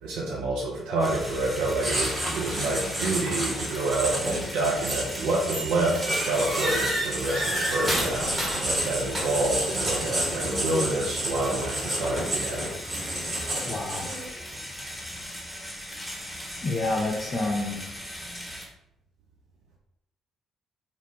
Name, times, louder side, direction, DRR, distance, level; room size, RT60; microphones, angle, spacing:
voice 1, 0.0-12.7, right 2 dB, 65° right, -3 dB, 0.4 m, -28 dB
sound 1, 1.0-18.6, equal, 5° left, 0.9 m, -38 dB
Writing, 1.8-14.4, right 1 dB, 45° right, 1.3 m, -31 dB
sound 2, 4.9-5.2 5.5-9.6, right 1 dB, 25° right, 1.0 m, -30 dB
voice 2, 13.7-14.0 16.6-17.8, left 2 dB, 40° left, -4 dB, 0.5 m, -28 dB
2.9 x 2.1 x 2.8 m, 0.81 s
figure-of-eight pair, 45°, 0 cm